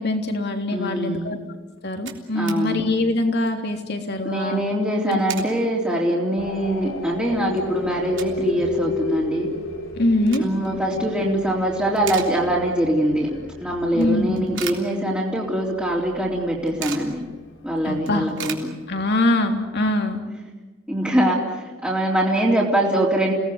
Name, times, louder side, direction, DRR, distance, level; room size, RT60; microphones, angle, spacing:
voice 1, 0.0-1.4 1.8-4.6 5.1-5.2 10.0-10.5 13.9-14.6 17.8-18.3 18.9-20.2, left 1 dB, 55° left, 4 dB, 3.4 m, -23 dB
voice 2, 0.7-1.3 2.3-2.8 4.2-9.5 10.4-13.3 13.6-17.2 17.6-18.7 20.9-23.3, right 1 dB, 5° right, -5 dB, 3.7 m, -23 dB
sound 1, 1.5-1.6 1.7-2.6 3.0-3.1 3.4-3.7 4.9-5.6 6.1-6.2 6.7-6.8 7.1-8.5 8.8-8.9 9.9-10.8 11.2-11.5 11.8-12.8 13.2-13.3 14.0-15.5 15.8-15.9 16.1-17.2 17.6-17.7 17.9-19.3, right 8 dB, 65° right, 3.4 m, -37 dB
sound 2, 6.4-18.0, left 2 dB, 90° left, 4.8 m, -33 dB
29.5 x 18.5 x 9.6 m, 1.2 s
head